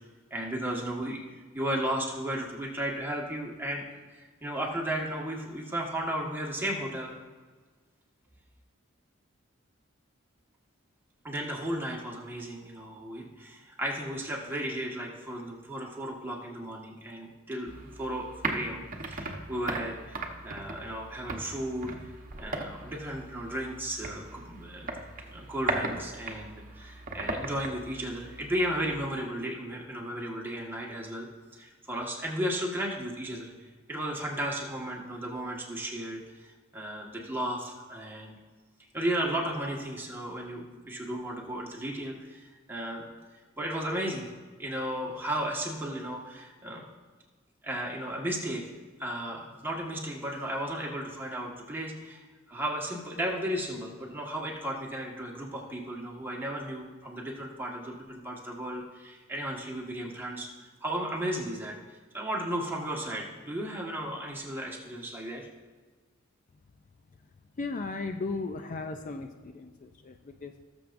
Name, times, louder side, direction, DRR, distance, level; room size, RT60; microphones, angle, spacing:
voice 1, 0.3-3.8 4.1-7.1 11.2-18.8 19.1-21.9 22.4-24.9 25.3-31.3 31.5-33.5 33.9-38.4 38.9-43.1 43.6-44.3 44.6-46.9 47.6-48.6 49.0-52.2 52.5-60.5 60.8-61.7 62.1-65.4, right 1 dB, 10° right, -2 dB, 1.5 m, -34 dB
sound 1, 17.7-29.1, right 2 dB, 40° right, 1.0 m, -38 dB
voice 2, 67.6-70.5, left 3 dB, 40° left, 6 dB, 0.4 m, -36 dB
19.0 x 7.0 x 2.6 m, 1.4 s
head